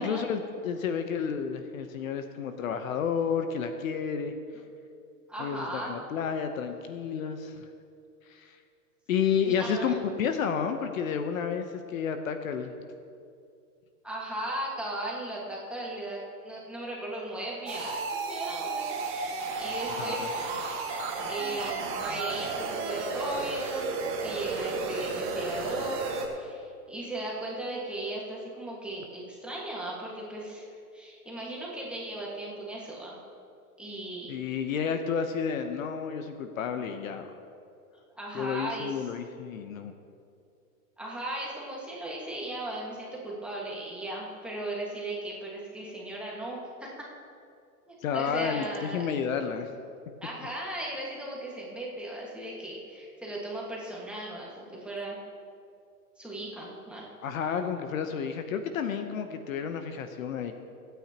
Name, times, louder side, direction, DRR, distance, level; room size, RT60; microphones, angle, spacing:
voice 1, 0.0-4.3 5.4-7.6 8.3-8.6 9.1-12.7 19.9-20.3 34.3-37.3 38.3-39.9 48.0-49.7 57.2-60.5, left 7 dB, 60° left, 7 dB, 1.0 m, -31 dB
voice 2, 5.3-5.9 9.4-9.9 14.0-20.6 21.2-23.9 24.2-30.6 30.9-33.2 33.8-34.6 38.1-39.0 41.0-47.1 47.9-49.1 50.2-55.2 56.2-57.0, right 1 dB, ahead, -5 dB, 1.7 m, -37 dB
sound 1, 17.7-26.3, right 4 dB, 25° right, 1.6 m, -33 dB
24.0 x 9.3 x 2.9 m, 2.5 s
hypercardioid pair, 155°, 47 cm